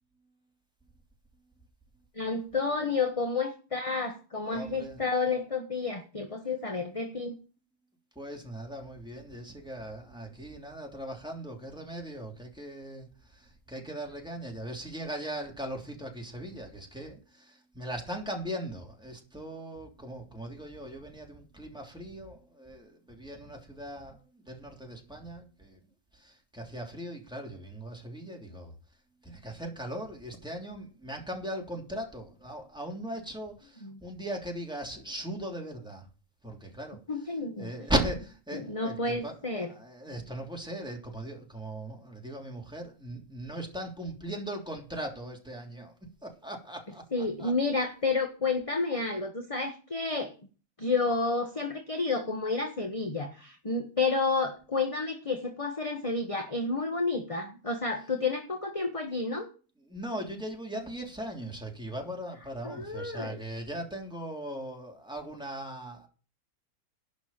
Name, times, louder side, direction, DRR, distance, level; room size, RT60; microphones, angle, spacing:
voice 1, 2.1-7.3 33.8-34.0 37.1-37.9 38.5-39.7 47.1-50.3 50.8-59.5 62.6-63.4, left 3 dB, 25° left, 4 dB, 1.5 m, -30 dB
voice 2, 4.4-5.0 8.1-25.8 26.1-28.7 29.2-36.1 36.4-37.0 37.6-39.4 39.6-45.9 46.2-47.0 47.4-47.5 59.9-66.1, right 1 dB, 5° right, 1 dB, 3.1 m, -38 dB
11.5 x 6.4 x 7.4 m, 0.35 s
omnidirectional pair, 1.6 m